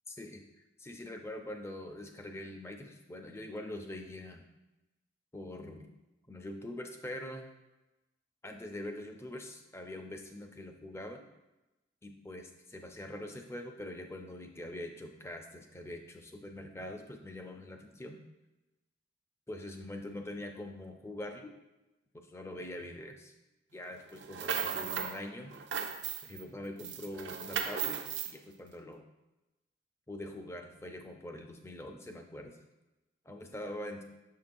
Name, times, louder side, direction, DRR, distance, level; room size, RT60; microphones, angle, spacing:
voice 1, 0.1-0.4 0.8-4.5 5.3-5.9 6.3-7.5 8.4-11.3 12.0-18.2 19.5-21.5 22.1-23.3 23.7-25.5 26.2-28.0 28.2-29.0 30.1-32.6 33.3-34.0, left 1 dB, 15° left, 4 dB, 0.4 m, -43 dB
sound 1, 24.2-25.2 25.5-26.4 26.8-28.3, right 7 dB, 80° right, 0.5 m, -36 dB
6.5 x 5.6 x 2.5 m, 1.0 s
head